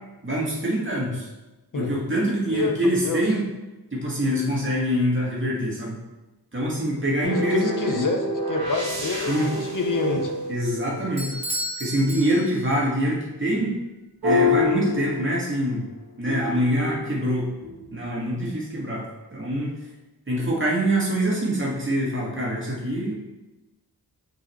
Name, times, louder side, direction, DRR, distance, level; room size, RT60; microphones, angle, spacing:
voice 1, 0.2-1.3 1.8-3.5 3.9-6.0 6.5-8.0 9.3-9.5 10.5-11.3 11.8-13.7 14.2-15.8 16.2-17.5 17.9-19.1 19.3-19.7 20.3-23.1, equal, 30° right, -5 dB, 1.8 m, -24 dB
voice 2, 2.5-3.2 7.2-10.3, left 4 dB, 55° left, 4 dB, 0.8 m, -27 dB
sound 1, 7.2-11.4 14.2-15.7 16.3-18.0, left 2 dB, 70° right, 1.7 m, -28 dB
Bell / Doorbell, 11.2-12.9, equal, 15° right, 0.8 m, -33 dB
7.7 x 3.9 x 3.1 m, 1.1 s
wide cardioid pair, 105°, 39 cm